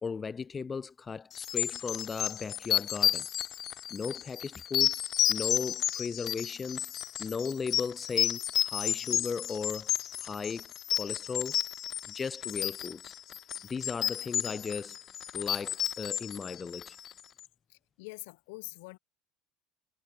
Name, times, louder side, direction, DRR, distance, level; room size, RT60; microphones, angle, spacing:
voice 1, 0.0-3.3 3.9-4.9 5.3-6.9 7.2-9.9 10.2-11.6 12.1-13.1 13.7-15.0 15.3-17.0, left 5 dB, 20° left, 1.8 m, -36 dB
sound 1, 1.4-17.2, left 11 dB, 35° left, 0.5 m, -32 dB
voice 2, 17.7-19.0, left 27 dB, 75° left, 6.8 m, -45 dB
supercardioid pair, 140°, 0 cm